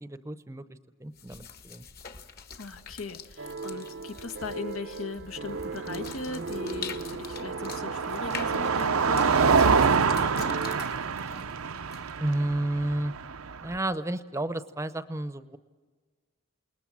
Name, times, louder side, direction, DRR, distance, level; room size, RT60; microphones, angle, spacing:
voice 1, 0.0-1.8 12.2-13.1 13.6-15.6, right 1 dB, 15° right, 12 dB, 0.7 m, -31 dB
sound 1, 1.1-12.3, left 6 dB, 45° left, 1.5 m, -45 dB
voice 2, 2.6-10.6, left 3 dB, 85° left, 8 dB, 1.5 m, -39 dB
sound 2, 3.4-10.8, right 4 dB, 55° right, 0.7 m, -38 dB
Car passing by, 5.5-13.8, right 5 dB, 85° right, 0.7 m, -26 dB
28.5 x 20.0 x 7.4 m, 1.4 s
head